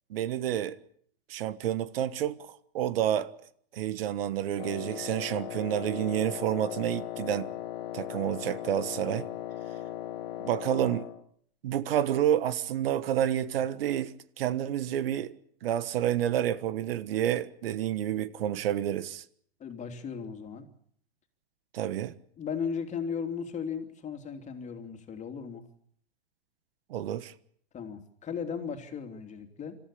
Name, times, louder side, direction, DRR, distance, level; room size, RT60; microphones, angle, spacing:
voice 1, 0.1-0.8 1.3-3.3 3.7-7.5 7.9-9.3 10.4-11.1 11.6-19.2 21.7-22.1 26.9-27.3, right 11 dB, 65° right, 1.4 m, -29 dB
Wind instrument woodwind instrument, 4.6-11.2, left 12 dB, 55° left, 2.5 m, -38 dB
voice 2, 19.6-20.7 22.4-25.6 27.7-29.8, left 6 dB, 20° left, 3.1 m, -36 dB
26.5 x 14.5 x 8.5 m
hypercardioid pair, 120°, 32 cm